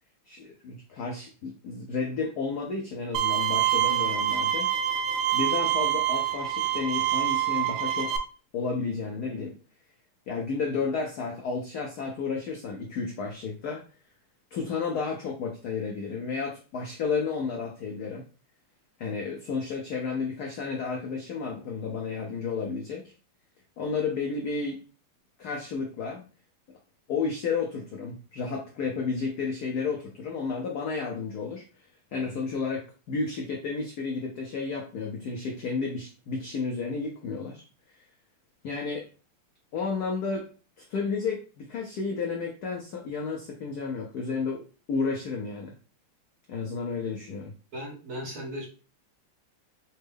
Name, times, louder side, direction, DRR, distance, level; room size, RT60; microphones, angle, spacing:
voice 1, 0.3-4.7 5.3-8.2 8.5-9.6 10.3-13.8 14.5-18.2 19.0-23.1 23.8-24.8 25.4-26.3 27.1-37.6 38.6-39.1 39.7-40.5 40.8-45.7 46.5-47.5, left 4 dB, 80° left, 1 dB, 0.8 m, -32 dB
Bowed string instrument, 3.1-8.2, right 11 dB, 75° right, 1.1 m, -26 dB
voice 2, 47.7-48.7, equal, 55° right, -3 dB, 1.3 m, -36 dB
4.2 x 2.2 x 3.3 m, 0.36 s
omnidirectional pair, 2.4 m